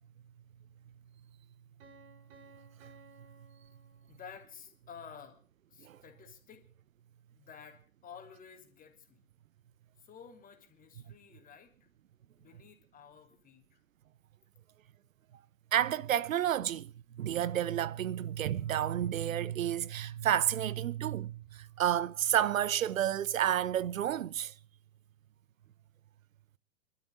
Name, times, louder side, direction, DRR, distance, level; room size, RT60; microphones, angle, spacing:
Piano, 1.8-4.6, right 3 dB, 45° right, 5.5 m, -59 dB
voice 1, 4.1-5.4 5.7-6.7 7.3-9.2 10.0-11.9 12.4-13.8, left 7 dB, 20° left, 3.2 m, -52 dB
voice 2, 15.7-24.5, right 11 dB, 75° right, 0.8 m, -31 dB
26.0 x 12.5 x 3.8 m
hypercardioid pair, 120°, 40 cm